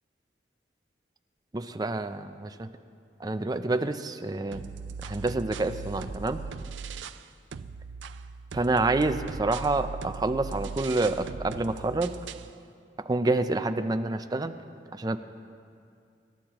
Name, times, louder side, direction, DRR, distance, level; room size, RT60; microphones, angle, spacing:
voice 1, 1.5-2.7 3.2-4.7 5.0-6.4 8.5-12.2 13.1-14.5 14.9-15.2, right 2 dB, 20° right, 9 dB, 0.5 m, -28 dB
sound 1, 4.5-7.3 7.5-12.5, right 5 dB, 80° right, 0.4 m, -39 dB
25.5 x 11.5 x 3.0 m, 2.4 s
head